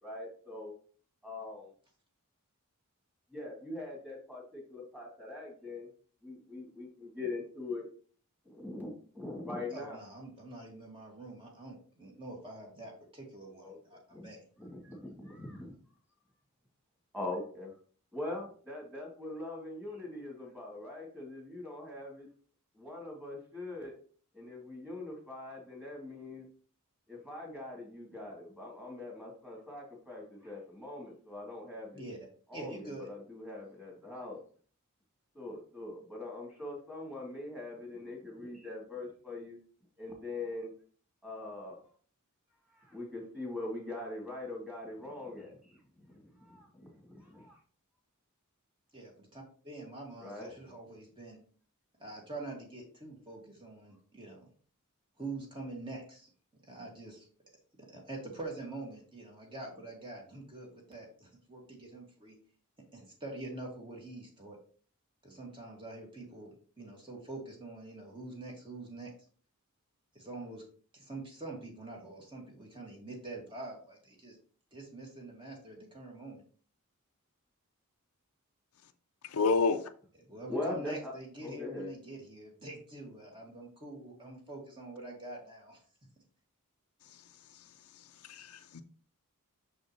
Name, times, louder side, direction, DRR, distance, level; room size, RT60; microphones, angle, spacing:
voice 1, 0.0-0.7 1.2-1.7 3.3-5.9 6.2-7.8 8.4-10.0 13.6-13.8 14.1-14.3 14.6-15.8 17.1-17.7 18.1-22.3 22.7-23.9 24.3-26.4 27.1-32.0 32.5-34.4 35.3-39.6 40.0-40.7 41.2-41.9 42.7-47.6 50.2-50.5 80.5-81.1 81.4-81.9, left 2 dB, 5° right, 3.1 m, -42 dB
voice 2, 9.7-14.4 31.9-32.2 32.5-33.1 48.9-51.4 52.0-54.5 55.2-56.3 56.6-57.3 57.8-62.4 62.9-64.6 65.2-69.1 70.1-70.6 70.9-74.4 74.7-76.4 80.3-85.8, right 2 dB, 25° right, 2.3 m, -45 dB
voice 3, 79.3-79.8 88.3-88.8, left 4 dB, 80° left, 0.6 m, -28 dB
6.5 x 6.3 x 3.2 m
head